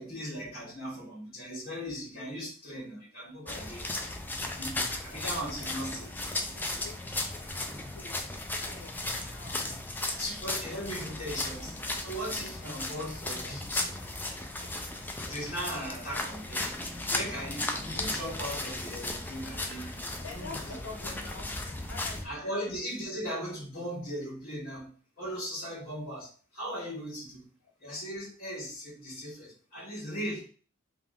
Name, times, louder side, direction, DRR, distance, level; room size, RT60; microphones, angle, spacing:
voice 1, 0.0-3.9 4.4-6.2 10.2-13.9 15.3-16.8 17.1-20.8 22.2-27.4 27.8-30.5, equal, 45° left, -10 dB, 1.6 m, -38 dB
sound 1, 3.5-22.2, left 2 dB, 10° left, 0.4 m, -36 dB
voice 2, 5.5-7.4 7.9-9.6 13.0-13.1 20.2-21.5 21.9-22.7 24.8-24.9, left 4 dB, 75° left, -1 dB, 1.0 m, -48 dB
3.7 x 2.3 x 3.5 m, 0.39 s
head